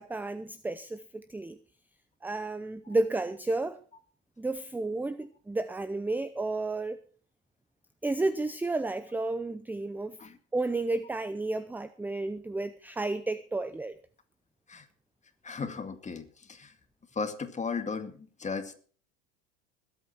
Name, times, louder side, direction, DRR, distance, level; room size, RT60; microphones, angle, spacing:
voice 1, 0.0-1.6 2.2-3.8 4.4-7.0 8.0-10.2 10.5-14.0, right 2 dB, 5° right, 13 dB, 0.6 m, -32 dB
voice 2, 15.4-16.7 17.1-18.8, left 5 dB, 20° left, 7 dB, 2.1 m, -36 dB
20.5 x 8.7 x 4.4 m, 0.43 s
supercardioid pair, 110°, 35 cm